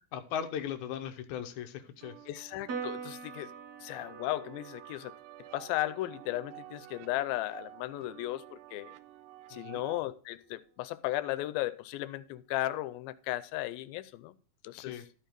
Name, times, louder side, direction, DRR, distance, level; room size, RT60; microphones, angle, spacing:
voice 1, 0.1-2.2 9.5-9.8 14.7-15.0, left 9 dB, 70° left, 2.0 m, -38 dB
sound 1, 2.0-10.0, right 14 dB, 80° right, 2.1 m, -51 dB
voice 2, 2.3-3.5 3.8-5.1 5.5-8.9 9.5-14.3 14.6-15.0, left 16 dB, 90° left, 2.4 m, -35 dB
Piano, 2.7-9.4, right 5 dB, 60° right, 1.0 m, -46 dB
13.5 x 4.6 x 5.1 m
omnidirectional pair, 4.2 m